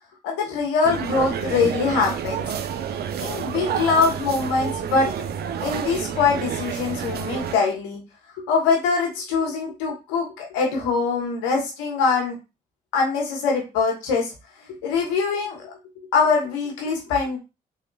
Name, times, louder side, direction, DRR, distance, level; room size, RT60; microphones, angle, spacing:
voice 1, 0.2-2.4 3.2-5.1 5.6-8.0 8.3-12.4 12.9-14.3 14.8-15.7 16.1-17.4, left 5 dB, 85° left, 0 dB, 1.1 m, -23 dB
sound 1, 0.8-7.6, right 8 dB, 65° right, 0.5 m, -29 dB
3.5 x 3.5 x 2.3 m, 0.27 s
hypercardioid pair, 45°, 18 cm